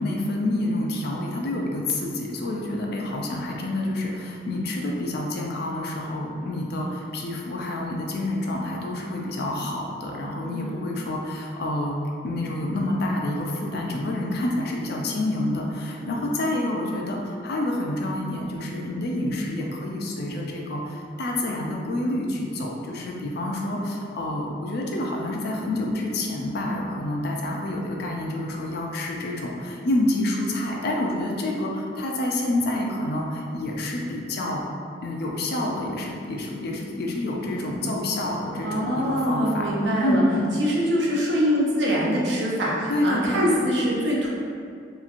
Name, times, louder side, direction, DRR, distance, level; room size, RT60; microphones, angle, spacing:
voice 1, 0.0-12.0 12.2-34.7 35.0-39.7 40.0-40.5 42.9-43.7, left 1 dB, 60° left, -1 dB, 0.4 m, -28 dB
voice 2, 10.4-10.8 16.0-16.2 38.6-40.2 40.6-44.3, equal, 75° right, -4 dB, 0.6 m, -24 dB
3.0 x 2.4 x 2.4 m, 2.3 s
head